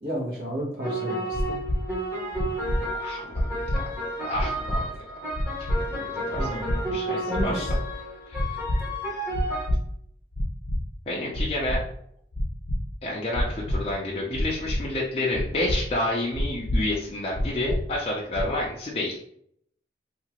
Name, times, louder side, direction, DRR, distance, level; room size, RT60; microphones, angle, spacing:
voice 1, 0.0-1.6 4.7-4.8 6.3-7.8, equal, 65° right, -2 dB, 1.1 m, -33 dB
sound 1, 0.8-9.7, right 1 dB, 10° right, 0.8 m, -32 dB
sound 2, 1.3-1.8 2.3-2.8 3.3-3.8 4.3-4.8 5.3-5.8 6.3-6.8 7.3-7.8 8.3-8.8 9.3-9.8 10.3-10.8 11.3-11.8 12.3-12.8 13.3-13.8 14.3-14.8 15.3-15.8 16.3-16.8 17.3-17.8 18.3-18.7, equal, 75° left, 0.8 m, -26 dB
voice 2, 3.0-3.7 4.2-4.8 5.6-6.6 6.9-7.6 8.3-8.5 9.1-9.2 11.1-11.8 13.0-19.1, left 1 dB, 35° left, -4 dB, 0.4 m, -30 dB
2.8 x 2.4 x 2.9 m, 0.68 s
head